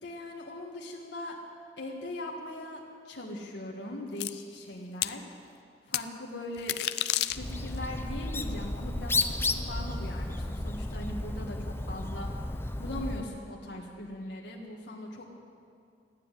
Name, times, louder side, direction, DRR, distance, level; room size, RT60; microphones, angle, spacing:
voice 1, 0.0-1.4 1.8-5.3 5.9-6.8 7.3-12.3 12.8-15.4, left 1 dB, 90° left, -2 dB, 1.7 m, -40 dB
sound 1, 4.2-4.3 5.0-5.2 5.9-6.0 6.6-7.8, left 13 dB, 65° left, 0.5 m, -30 dB
Bird, 7.3-13.3, left 2 dB, 15° left, 0.6 m, -33 dB
14.5 x 9.7 x 9.8 m, 2.4 s
head